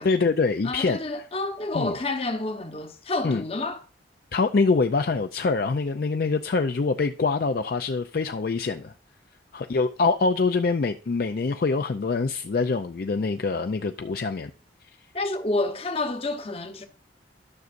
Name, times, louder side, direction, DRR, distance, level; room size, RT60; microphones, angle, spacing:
voice 1, 0.0-1.0 1.7-1.9 3.2-3.4 4.3-8.9 9.5-14.5, left 4 dB, 50° left, 0.4 m, -24 dB
voice 2, 0.6-3.8 15.1-16.9, left 2 dB, 30° left, 0.9 m, -29 dB
12.0 x 6.4 x 2.5 m
head